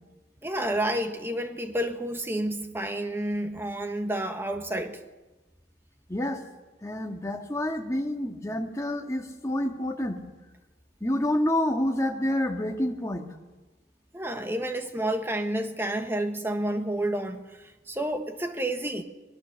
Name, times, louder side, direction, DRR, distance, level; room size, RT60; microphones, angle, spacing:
voice 1, 0.4-5.0 14.1-19.0, right 1 dB, 10° right, 6 dB, 1.4 m, -30 dB
voice 2, 6.1-6.4 6.8-10.2 11.0-13.3, left 1 dB, 15° left, 3 dB, 1.8 m, -28 dB
24.0 x 18.0 x 6.5 m, 1.2 s
head